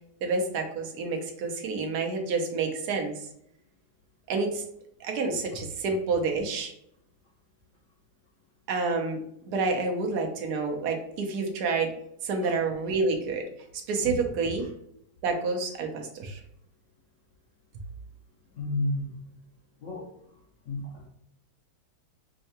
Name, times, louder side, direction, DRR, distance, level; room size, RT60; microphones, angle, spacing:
voice 1, 0.2-3.3 4.3-4.6 5.0-6.7 8.7-9.2 9.4-11.9 12.2-13.5 13.9-14.6 15.2-16.4, right 4 dB, 65° right, 2 dB, 1.1 m, -28 dB
voice 2, 18.6-19.2 19.8-20.1 20.7-21.1, left 1 dB, 85° left, -2 dB, 0.6 m, -32 dB
5.5 x 2.2 x 2.8 m, 0.73 s
omnidirectional pair, 2.2 m